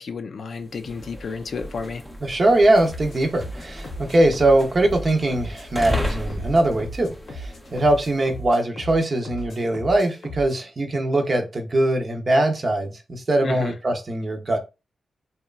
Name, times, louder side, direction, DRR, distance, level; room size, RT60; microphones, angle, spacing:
voice 1, 0.0-2.0 13.4-13.8, left 4 dB, 65° left, 0.4 m, -31 dB
sound 1, 0.6-8.4, left 1 dB, ahead, 0.5 m, -34 dB
voice 2, 2.2-14.6, right 1 dB, 45° right, 0.6 m, -21 dB
sound 2, 2.9-10.6, equal, 90° left, 0.8 m, -38 dB
2.8 x 2.3 x 2.3 m
cardioid pair, 80°, 0 cm